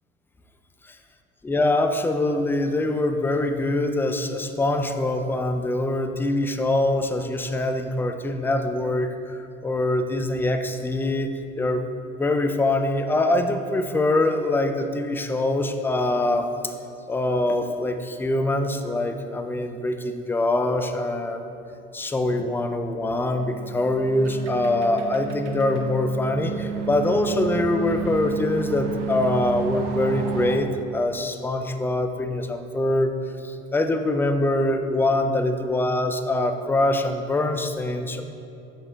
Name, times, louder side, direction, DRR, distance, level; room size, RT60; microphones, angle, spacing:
voice 1, 1.4-11.8 12.2-16.7 17.1-21.5 21.9-33.1 33.4-38.2, left 2 dB, 5° left, 7 dB, 0.4 m, -24 dB
sound 1, 23.3-30.6, right 6 dB, 65° right, 0.9 m, -31 dB
8.1 x 6.0 x 3.7 m, 2.7 s
hypercardioid pair, 90°, 34 cm